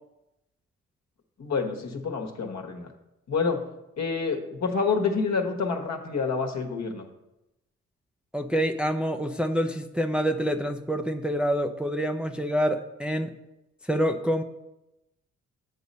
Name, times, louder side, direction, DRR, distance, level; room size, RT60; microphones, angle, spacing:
voice 1, 1.4-2.9 3.3-3.6 4.0-7.0, left 5 dB, 55° left, 4 dB, 1.4 m, -28 dB
voice 2, 8.3-13.3 13.9-14.4, equal, 5° right, 6 dB, 0.6 m, -26 dB
8.5 x 4.1 x 6.6 m, 0.93 s
supercardioid pair, 50°, 32 cm